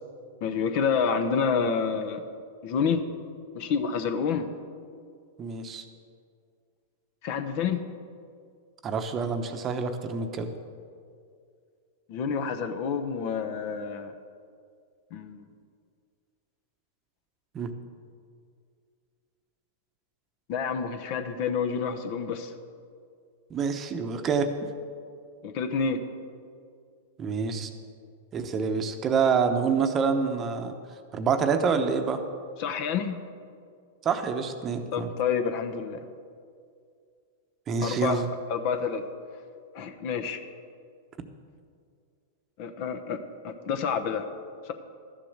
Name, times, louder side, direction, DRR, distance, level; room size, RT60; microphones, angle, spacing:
voice 1, 0.4-2.2 2.6-3.0 3.5-4.5 7.2-7.8 12.1-14.1 15.1-15.4 20.5-22.5 25.4-26.0 32.6-33.2 34.9-36.0 37.8-38.2 38.5-39.0 39.7-40.4 42.6-43.2 43.4-44.3 44.7-44.8, left 6 dB, 50° left, 8 dB, 0.9 m, -28 dB
voice 2, 5.4-5.8 8.8-10.5 17.5-17.7 23.5-24.5 27.2-27.7 28.3-30.7 31.1-32.2 34.0-35.1 37.7-38.3, right 5 dB, 25° right, 7 dB, 0.9 m, -27 dB
12.5 x 7.6 x 6.5 m, 2.3 s
hypercardioid pair, 125°, 0 cm